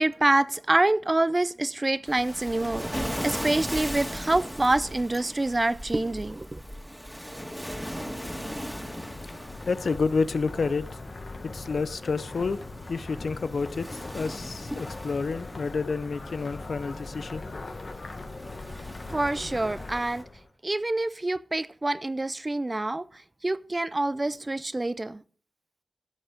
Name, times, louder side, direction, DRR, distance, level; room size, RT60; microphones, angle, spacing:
voice 1, 0.0-6.6 19.1-20.2 20.6-23.1 23.4-25.2, right 2 dB, 35° right, 0.5 m, -26 dB
Waves surf, 2.0-20.2, equal, ahead, 2.1 m, -39 dB
sound 1, 7.0-20.5, left 3 dB, 60° left, 1.6 m, -41 dB
voice 2, 9.7-10.9 11.5-17.4, left 4 dB, 80° left, 0.6 m, -29 dB
12.5 x 7.9 x 5.0 m
cardioid pair, 55°, 0 cm